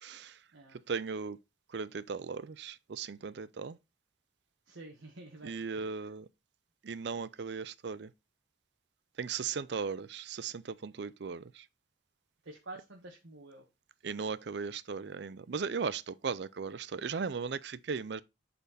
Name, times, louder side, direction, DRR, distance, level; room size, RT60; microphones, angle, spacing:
voice 1, 0.0-0.4 0.9-1.4 1.7-3.8 5.4-6.3 6.8-8.1 9.2-11.7 14.0-18.2, right 5 dB, 60° right, 0.5 m, -37 dB
voice 2, 4.7-5.9 12.4-13.6, right 2 dB, 90° right, 1.4 m, -49 dB
8.1 x 4.4 x 4.1 m
head